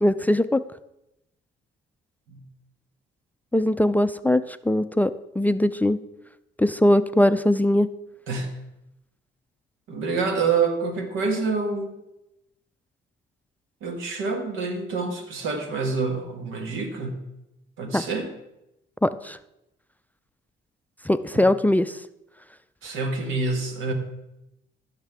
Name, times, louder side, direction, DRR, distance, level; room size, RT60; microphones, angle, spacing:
voice 1, 0.0-0.6 3.5-6.0 6.6-7.9 17.9-18.0 19.0-19.4 21.1-22.0, left 1 dB, 10° left, 14 dB, 0.3 m, -21 dB
voice 2, 8.3-8.6 9.9-11.9 13.8-17.2 17.8-18.3 21.3-21.4 22.8-23.9, right 4 dB, 90° right, 5 dB, 1.5 m, -27 dB
14.5 x 6.6 x 3.5 m, 0.89 s
cardioid pair, 90°, 20 cm